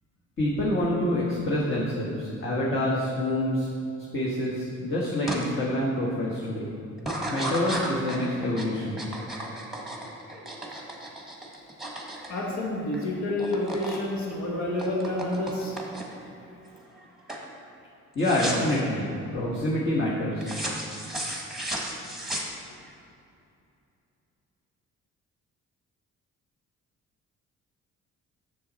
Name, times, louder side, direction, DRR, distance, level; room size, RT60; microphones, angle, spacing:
voice 1, 0.4-3.7 4.1-6.7 7.2-9.0 18.1-20.6, left 1 dB, 40° left, -6 dB, 1.4 m, -27 dB
sound 1, 5.3-5.4 5.9-6.3 7.0-13.0 13.3-14.0 14.3-16.3 16.7-17.0 17.3-17.5 18.2-18.8 20.4-22.9, right 1 dB, ahead, 1.3 m, -34 dB
voice 2, 12.3-15.8, left 1 dB, 70° left, -2 dB, 1.4 m, -29 dB
6.9 x 6.5 x 4.1 m, 2.6 s
cardioid pair, 90°, 30 cm